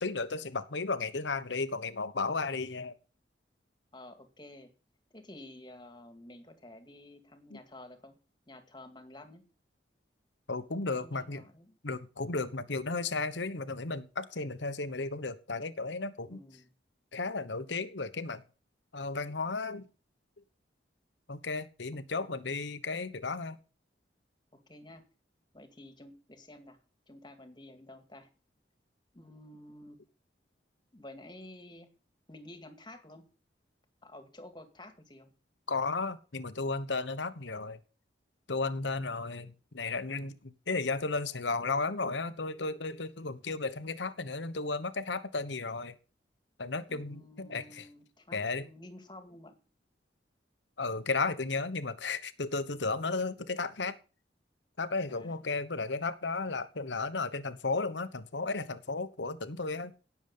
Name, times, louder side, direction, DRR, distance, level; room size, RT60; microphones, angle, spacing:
voice 1, 0.0-2.9 7.5-7.6 10.5-11.4 11.8-16.4 17.1-18.4 18.9-19.8 21.3-23.6 35.7-37.8 38.5-45.9 46.6-47.8 48.3-48.6 50.8-54.0 54.8-59.9, left 3 dB, 80° left, 1.2 m, -34 dB
voice 2, 3.9-4.7 5.1-8.2 8.5-9.4 10.9-11.8 16.3-16.7 22.2-22.5 24.5-25.0 25.5-26.8 27.1-28.3 29.1-30.0 30.9-31.9 32.3-33.2 34.0-35.3 46.9-49.6 55.1-55.5, left 1 dB, 25° left, 2.2 m, -51 dB
17.0 x 7.3 x 5.5 m
head